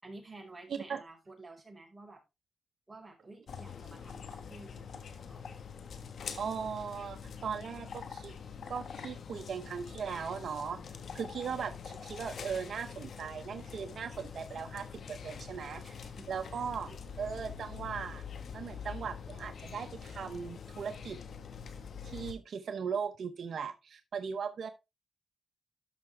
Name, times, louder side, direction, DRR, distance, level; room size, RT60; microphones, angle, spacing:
voice 1, 0.0-2.2 2.9-5.4 15.8-16.9, right 2 dB, 15° right, 4.9 m, -52 dB
sound 1, 3.5-22.3, left 6 dB, 70° left, 1.3 m, -45 dB
voice 2, 6.4-8.3 8.7-10.8 11.1-15.8 16.3-18.2 18.5-21.2 22.0-24.7, right 6 dB, 75° right, 0.8 m, -38 dB
13.0 x 5.8 x 3.3 m
cardioid pair, 75°, 0 cm